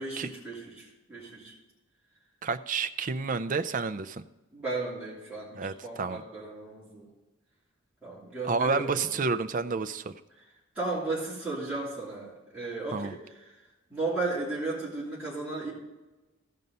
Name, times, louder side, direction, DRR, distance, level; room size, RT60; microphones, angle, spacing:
voice 1, 0.0-1.5 4.5-7.0 8.0-9.0 10.7-13.2 13.5-13.6 13.9-15.7, right 2 dB, 5° right, -11 dB, 3.0 m, -35 dB
voice 2, 2.4-4.2 5.6-6.2 8.4-10.1 12.9-13.1, right 4 dB, 35° right, 10 dB, 0.4 m, -30 dB
15.0 x 5.3 x 5.5 m, 1.1 s
head